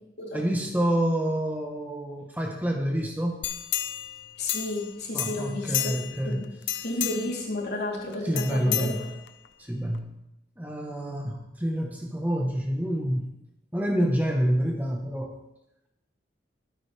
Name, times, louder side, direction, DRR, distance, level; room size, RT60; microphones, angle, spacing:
voice 1, 0.3-3.4 5.1-6.4 8.2-9.0 9.6-10.1 10.6-13.3 13.7-15.3, equal, 10° right, 0 dB, 1.4 m, -27 dB
sound 1, 3.4-4.9 5.2-6.2 6.6-7.4 8.4-9.5 9.9-10.0, left 12 dB, 80° left, 0.9 m, -31 dB
voice 2, 4.4-5.9 6.2-6.5 6.8-9.1, left 2 dB, 60° left, -3 dB, 3.7 m, -32 dB
22.5 x 9.1 x 3.6 m, 0.86 s
head